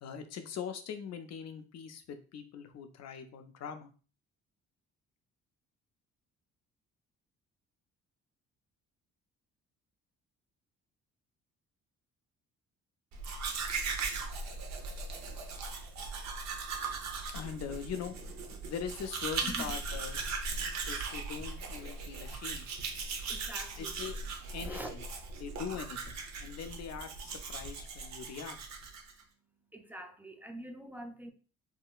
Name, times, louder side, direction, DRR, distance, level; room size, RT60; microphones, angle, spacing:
voice 1, 0.0-3.9 17.3-18.2 18.5-20.2 20.9-22.7 23.8-24.2 24.5-25.0 25.4-28.6, left 7 dB, 60° left, 0.6 m, -42 dB
Domestic sounds home sounds, 13.1-29.2, right 4 dB, 65° right, 0.7 m, -39 dB
voice 2, 19.4-19.7 23.3-23.9 24.6-24.9 29.7-31.3, right 1 dB, 5° right, 0.4 m, -44 dB
3.7 x 2.2 x 2.3 m
cardioid pair, 90°, 30 cm